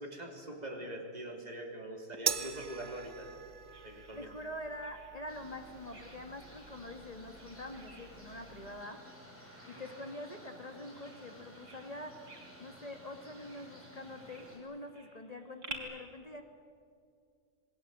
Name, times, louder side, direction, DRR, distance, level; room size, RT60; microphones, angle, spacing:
voice 1, 0.0-3.4 3.8-4.3 9.7-9.8, right 1 dB, 25° right, 1 dB, 3.4 m, -43 dB
Bird vocalization bird call bird song, 2.1-15.8, right 2 dB, 75° right, 3.7 m, -55 dB
sound 1, 2.3-8.8, right 6 dB, 45° right, 0.6 m, -42 dB
voice 2, 4.1-9.0 9.7-12.2 12.6-16.4, left 1 dB, 25° left, 5 dB, 1.5 m, -45 dB
sound 2, 5.3-14.6, equal, 5° left, 5.8 m, -54 dB
27.5 x 21.0 x 8.0 m, 2.3 s
omnidirectional pair, 1.7 m